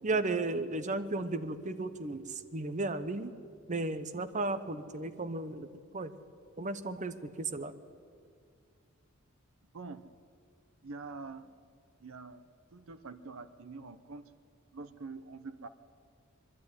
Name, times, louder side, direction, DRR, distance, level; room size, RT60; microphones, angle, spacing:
voice 1, 0.0-2.2 2.5-3.3 3.7-5.7 5.9-6.1 6.6-7.7, right 2 dB, 35° right, 10 dB, 0.9 m, -34 dB
voice 2, 10.8-11.6 12.0-12.4 12.7-14.2 14.7-15.7, right 4 dB, 70° right, 10 dB, 0.8 m, -45 dB
22.0 x 12.0 x 9.6 m, 2.2 s
head